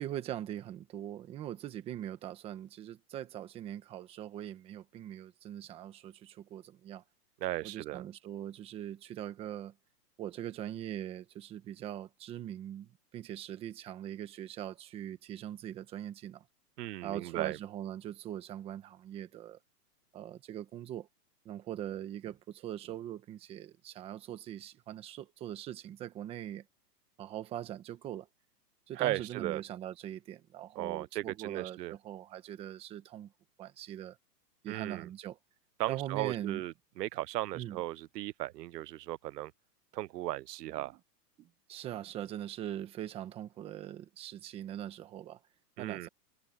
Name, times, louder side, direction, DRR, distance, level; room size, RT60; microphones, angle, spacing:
voice 1, 0.0-7.0 7.6-9.7 10.2-16.4 17.0-19.6 20.1-21.1 21.4-26.6 27.2-28.3 28.9-33.3 33.6-34.2 34.6-35.4 35.9-36.6 37.5-37.8 41.4-45.4 45.8-46.1, right 11 dB, 10° right, 1.1 m, -41 dB
voice 2, 7.4-8.0 16.8-17.6 28.9-29.6 30.8-31.9 34.7-35.1 35.8-39.5 39.9-41.0 45.8-46.1, right 15 dB, 85° right, 0.6 m, -36 dB
hypercardioid pair, 170°, 47 cm